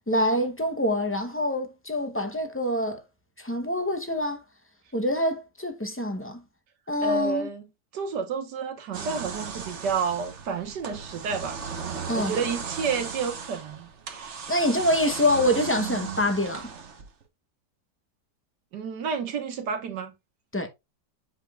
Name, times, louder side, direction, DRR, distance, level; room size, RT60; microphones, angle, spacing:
voice 1, 0.1-3.0 3.4-4.4 4.9-6.4 6.9-7.5 12.1-12.3 14.5-16.7 20.5-20.7, left 1 dB, 15° left, 0.4 m, -25 dB
voice 2, 7.0-7.6 7.9-11.6 12.1-13.9 18.7-20.1, right 5 dB, 85° right, 1.8 m, -30 dB
sound 1, 8.9-17.2, right 6 dB, 50° right, 1.3 m, -36 dB
8.0 x 5.1 x 2.3 m
omnidirectional pair, 1.8 m